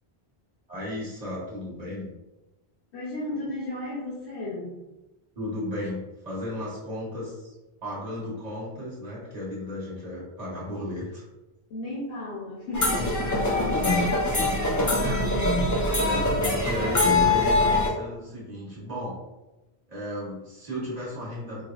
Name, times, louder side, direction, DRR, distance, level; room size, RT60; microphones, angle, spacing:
voice 1, 0.7-2.1 5.4-7.5 7.8-11.2 12.9-14.1 15.0-15.2 16.0-16.3 16.6-19.2 19.9-21.6, left 1 dB, 40° right, -8 dB, 1.3 m, -35 dB
voice 2, 2.9-4.8 11.7-14.3 14.8-15.5 16.1-16.4, left 2 dB, 80° left, -6 dB, 1.1 m, -35 dB
sound 1, 12.7-17.9, left 2 dB, 30° left, 0.3 m, -23 dB
4.7 x 2.0 x 2.4 m, 1.1 s
omnidirectional pair, 1.1 m